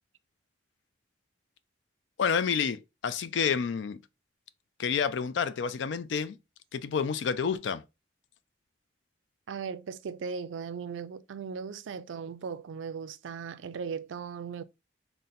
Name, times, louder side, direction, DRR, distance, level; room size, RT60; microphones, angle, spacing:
voice 1, 2.2-4.0 4.8-6.4 6.7-7.8, left 6 dB, 75° left, 0.4 m, -29 dB
voice 2, 9.5-14.6, right 6 dB, 90° right, 0.4 m, -38 dB
3.8 x 2.1 x 4.0 m
head